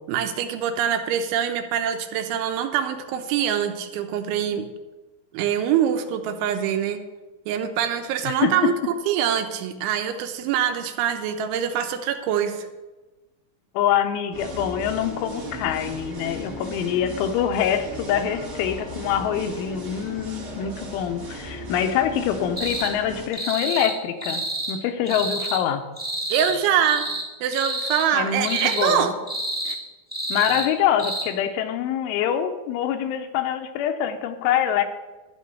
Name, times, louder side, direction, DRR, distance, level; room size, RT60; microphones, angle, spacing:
voice 1, 0.1-4.7 5.3-7.0 7.5-12.7 26.3-27.1 27.4-29.3 29.7-29.8, right 9 dB, 80° right, 6 dB, 3.4 m, -24 dB
voice 2, 8.2-8.7 13.7-24.4 24.7-25.8 28.1-29.1 30.3-34.8, left 9 dB, 85° left, 7 dB, 3.4 m, -25 dB
sound 1, 14.3-23.3, right 1 dB, 45° right, 1.4 m, -36 dB
sound 2, 22.6-22.9 23.3-23.9 24.2-24.7 25.1-25.6 26.0-26.6 26.8-27.2 27.5-28.1 28.4-29.0 29.3-29.8 30.1-30.7 31.0-31.2, right 1 dB, 5° right, 1.2 m, -29 dB
12.0 x 10.5 x 5.5 m, 1.2 s
omnidirectional pair, 5.4 m